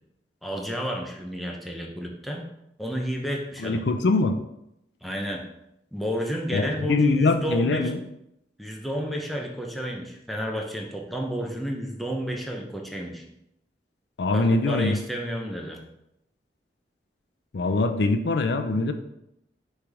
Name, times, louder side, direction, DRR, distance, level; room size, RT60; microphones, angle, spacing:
voice 1, 0.4-2.5 2.8-3.9 5.0-5.5 5.9-7.9 8.6-13.2 14.3-15.8, equal, ahead, 0 dB, 0.8 m, -31 dB
voice 2, 3.6-4.4 6.5-8.0 14.2-15.0 17.5-18.9, left 3 dB, 75° left, 8 dB, 0.5 m, -23 dB
5.9 x 3.3 x 4.8 m, 0.83 s
head